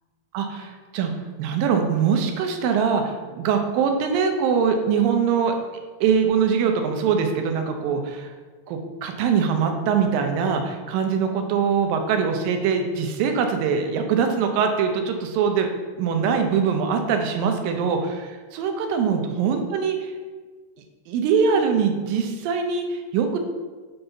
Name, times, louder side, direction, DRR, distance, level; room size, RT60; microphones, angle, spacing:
voice 1, 0.3-1.1 1.4-5.5 6.0-8.3 8.7-15.7 16.0-20.1 21.1-23.4, right 6 dB, 80° right, 4 dB, 2.4 m, -23 dB
7.8 x 4.0 x 3.9 m, 1.4 s
omnidirectional pair, 4.0 m